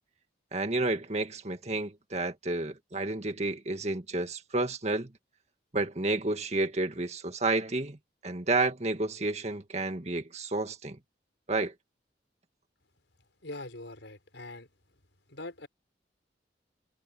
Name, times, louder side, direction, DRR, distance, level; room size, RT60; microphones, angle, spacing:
voice 1, 0.5-5.1 5.7-8.0 8.2-11.0 11.5-11.7, right 2 dB, 35° right, 1.8 m, -30 dB
voice 2, 13.4-14.7 15.3-15.7, left 2 dB, 80° left, 5.4 m, -42 dB
head